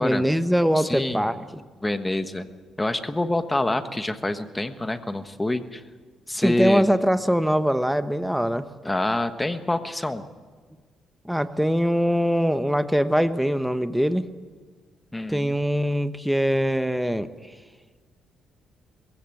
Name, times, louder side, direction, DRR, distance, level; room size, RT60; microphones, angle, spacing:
voice 1, 0.0-1.3 6.3-8.6 11.2-14.3 15.3-17.3, equal, ahead, 11 dB, 1.0 m, -22 dB
voice 2, 0.7-1.3 1.8-2.5 2.8-5.8 6.3-6.8 8.8-10.3 15.1-15.5, left 2 dB, 15° left, 9 dB, 1.3 m, -26 dB
21.5 x 16.0 x 7.8 m, 1.5 s
cardioid pair, 90°, 0 cm